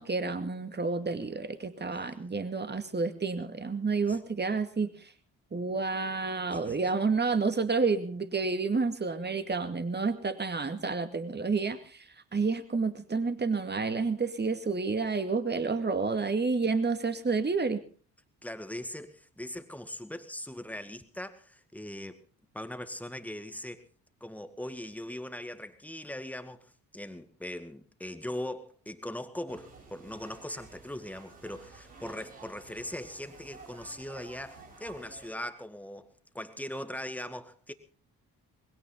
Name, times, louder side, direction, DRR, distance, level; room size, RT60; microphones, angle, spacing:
voice 1, 0.0-4.9 5.5-12.0 12.3-17.8, right 4 dB, 25° right, 2.3 m, -30 dB
voice 2, 18.4-22.2 22.5-23.8 24.2-37.7, left 1 dB, 5° left, 2.1 m, -40 dB
sound 1, 29.5-35.3, right 4 dB, 85° right, 6.0 m, -52 dB
21.0 x 17.0 x 4.0 m
figure-of-eight pair, 45°, 44 cm